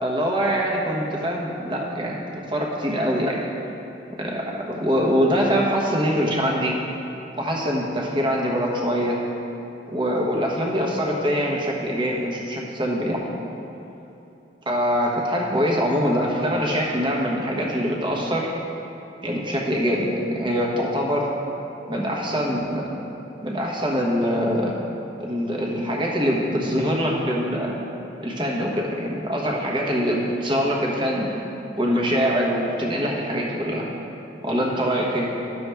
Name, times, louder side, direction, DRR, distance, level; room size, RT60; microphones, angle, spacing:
voice 1, 0.0-2.2 2.5-3.4 4.1-6.8 7.3-9.2 9.9-13.2 14.7-18.5 19.2-21.3 21.9-22.9 23.4-24.7 25.2-27.8 28.2-31.3 31.8-33.9 34.4-35.3, equal, 25° right, -2 dB, 1.1 m, -23 dB
11.0 x 6.9 x 3.4 m, 2.9 s
head